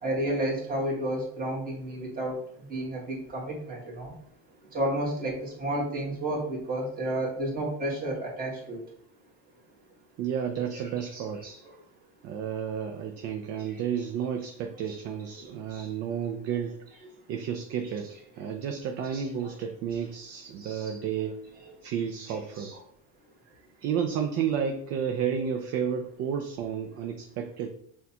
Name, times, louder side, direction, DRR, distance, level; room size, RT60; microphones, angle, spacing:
voice 1, 0.0-2.3 2.7-4.1 4.7-8.8 10.7-11.6 14.9-15.0 15.7-15.8 17.8-17.9 19.1-19.3 20.6-20.9 22.3-22.8, right 1 dB, 25° right, -2 dB, 1.4 m, -32 dB
voice 2, 10.2-11.4 12.2-16.7 17.3-21.4 21.8-22.7 23.8-27.7, right 7 dB, 50° right, 5 dB, 0.4 m, -31 dB
6.3 x 2.3 x 2.8 m, 0.65 s
cardioid pair, 145°, 33 cm